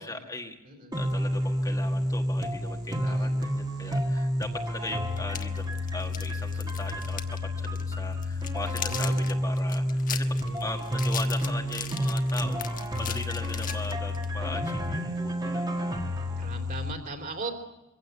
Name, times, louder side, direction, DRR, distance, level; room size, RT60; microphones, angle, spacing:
voice 1, 0.0-0.5 0.9-16.0, left 2 dB, 15° left, 2 dB, 1.5 m, -39 dB
voice 2, 0.6-1.0 3.0-3.4 3.8-4.1 4.4-5.1 8.7-9.2 10.2-10.7 16.4-17.5, right 3 dB, 40° right, 4 dB, 3.4 m, -40 dB
sound 1, 0.9-16.9, left 1 dB, 20° right, 1.7 m, -29 dB
sound 2, 5.2-7.4 7.6-7.8 8.2-14.3, left 9 dB, 40° left, 1.3 m, -38 dB
24.5 x 16.0 x 8.1 m, 0.97 s
head